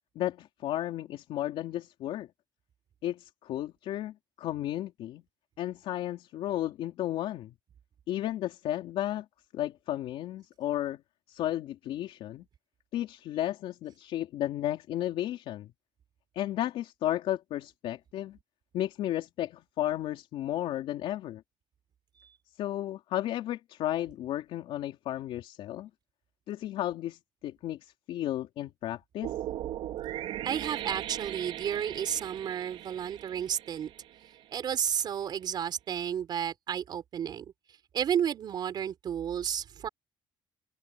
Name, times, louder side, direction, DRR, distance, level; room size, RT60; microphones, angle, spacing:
voice 1, 0.2-2.3 3.0-5.2 5.6-7.5 8.1-9.3 9.5-11.0 11.3-12.4 12.9-15.7 16.4-18.4 18.7-21.4 22.6-25.9 26.5-29.3, left 13 dB, 85° left, 3.6 m, -33 dB
sound 1, 29.2-34.4, right 12 dB, 80° right, 3.7 m, -38 dB
voice 2, 30.4-33.9 34.5-37.4 37.9-39.9, right 9 dB, 50° right, 4.2 m, -32 dB
open air
cardioid pair, 150°, 9 cm